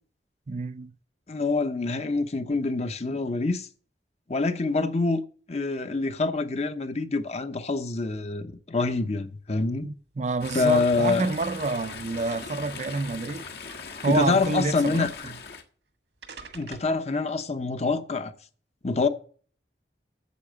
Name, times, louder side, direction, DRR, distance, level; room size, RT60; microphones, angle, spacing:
voice 1, 0.5-0.9 9.8-13.5 14.0-15.1, right 3 dB, 40° right, 0.5 m, -28 dB
voice 2, 1.3-3.7 4.3-5.2 5.5-9.9 10.5-11.3 14.1-15.3 16.5-18.3 18.8-19.1, left 3 dB, 40° left, 0.8 m, -26 dB
sound 1, 10.0-10.1 10.4-10.5 11.1-12.0 12.9-13.8 14.1-14.5 15.6-15.7 16.2-17.0, right 4 dB, 85° right, 1.6 m, -47 dB
Chatter / Stream, 10.4-15.6, left 5 dB, 65° left, 1.5 m, -40 dB
8.4 x 7.7 x 7.5 m
head